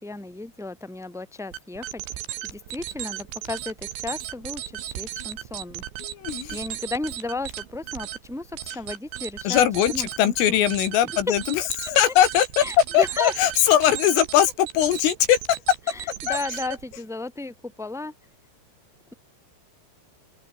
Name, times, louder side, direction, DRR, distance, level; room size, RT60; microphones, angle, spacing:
voice 1, 0.0-5.8 6.5-10.7 12.6-13.3 15.9-18.1, left 3 dB, ahead, 3.6 m, -34 dB
sound 1, 1.5-17.0, right 13 dB, 70° right, 4.0 m, -36 dB
voice 2, 6.0-6.6 9.4-12.6 12.9-15.4 16.3-16.4, left 11 dB, 75° left, 4.8 m, -21 dB
open air
omnidirectional pair, 5.9 m